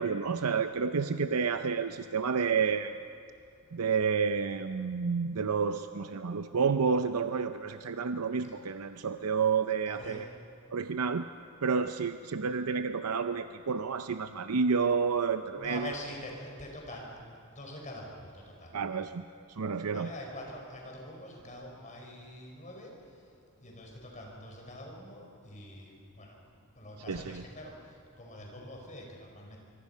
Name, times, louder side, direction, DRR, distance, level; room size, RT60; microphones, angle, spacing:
voice 1, 0.0-3.0 3.7-10.3 10.7-11.2 11.6-15.9 18.7-19.2 19.6-20.1 27.1-27.4, right 5 dB, 85° right, 9 dB, 0.6 m, -30 dB
voice 2, 9.9-10.3 15.5-18.8 19.9-23.3 23.6-26.4 26.7-29.6, left 1 dB, 35° left, 0 dB, 4.9 m, -45 dB
24.5 x 24.0 x 5.6 m, 2.5 s
head